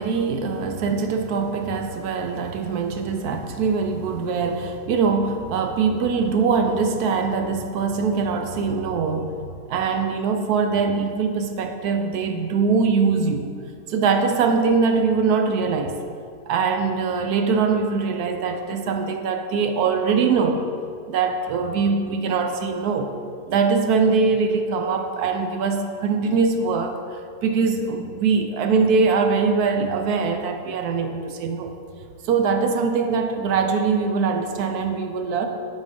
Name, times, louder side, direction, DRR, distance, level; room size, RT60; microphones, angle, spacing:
voice 1, 0.0-9.3 9.7-13.5 13.9-15.9 16.5-20.7 21.1-23.1 23.5-27.0 27.4-31.7 32.2-35.5, right 5 dB, 70° right, 5 dB, 1.1 m, -22 dB
10.5 x 4.3 x 5.2 m, 2.3 s
omnidirectional pair, 1.8 m